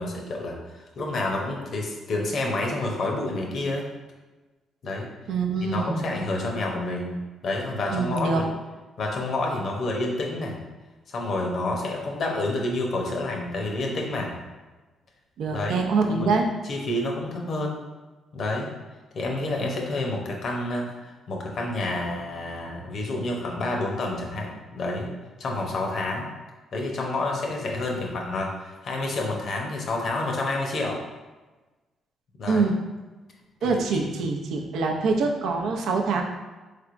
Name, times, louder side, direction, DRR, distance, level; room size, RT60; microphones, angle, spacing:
voice 1, 0.0-3.8 4.8-5.1 5.6-8.5 9.0-10.6 11.1-14.4 15.5-15.8 16.1-16.3 16.6-17.8 18.3-18.7 19.1-25.1 25.4-26.3 26.7-31.0 32.4-32.7 33.9-34.4, left 2 dB, 60° left, 0 dB, 0.7 m, -29 dB
voice 2, 5.3-6.0 7.9-8.4 15.4-16.5 32.5-32.7 33.6-36.2, right 4 dB, 75° right, 2 dB, 0.5 m, -24 dB
3.9 x 3.3 x 2.5 m, 1.2 s
cardioid pair, 90°, 0 cm